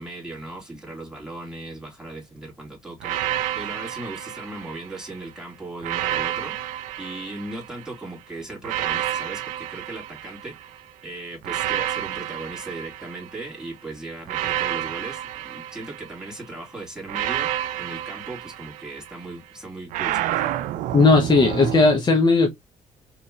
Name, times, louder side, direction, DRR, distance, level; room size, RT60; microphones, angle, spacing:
voice 1, 0.0-17.5 17.8-20.4, right 2 dB, 5° right, 2.6 m, -37 dB
sound 1, 3.0-5.2 5.8-8.0 8.6-10.8 11.4-13.6 14.3-16.4 17.1-19.2 19.9-21.9, right 13 dB, 85° right, 0.4 m, -30 dB
voice 2, 20.9-22.5, left 3 dB, 35° left, 0.9 m, -16 dB
4.1 x 3.1 x 2.4 m
cardioid pair, 95°, 13 cm